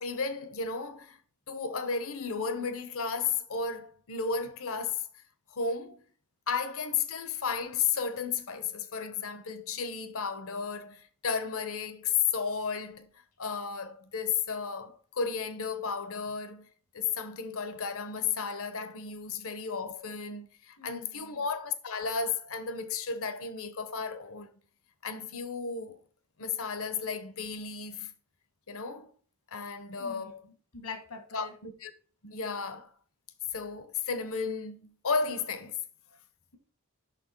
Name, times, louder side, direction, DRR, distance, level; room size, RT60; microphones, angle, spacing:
voice 1, 0.0-1.2 1.5-5.1 5.5-6.0 6.5-13.1 13.4-16.7 16.9-24.5 25.0-26.0 26.4-28.1 28.7-29.1 29.5-30.4 31.3-31.9 32.2-32.9 33.5-35.8, left 5 dB, 65° left, 0.9 m, -33 dB
voice 2, 20.8-21.4 30.0-31.5, left 4 dB, 85° left, 2.0 m, -45 dB
6.2 x 6.0 x 4.5 m
head